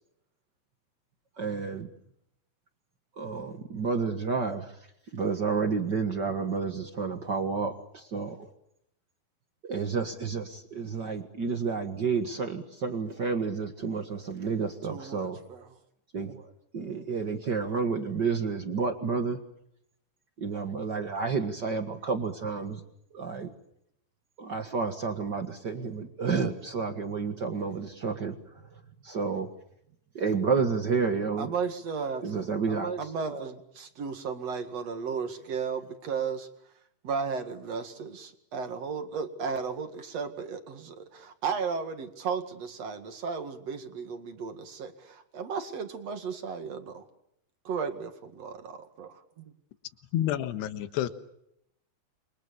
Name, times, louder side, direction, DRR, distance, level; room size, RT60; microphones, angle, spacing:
voice 1, 1.4-1.9 3.2-4.7 5.1-8.5 9.7-15.4 16.1-16.4 16.7-19.4 20.4-22.8 23.1-23.5 24.4-28.4 29.0-29.5 30.1-31.5 32.2-33.5, right 5 dB, 80° right, 6 dB, 0.9 m, -30 dB
voice 2, 14.9-15.7 31.4-32.5 33.0-36.5 37.0-47.0 47.6-49.4, right 5 dB, 45° right, 7 dB, 2.5 m, -35 dB
voice 3, 50.1-51.1, left 12 dB, 80° left, 10 dB, 3.4 m, -29 dB
28.5 x 24.5 x 7.0 m, 0.77 s
omnidirectional pair, 4.9 m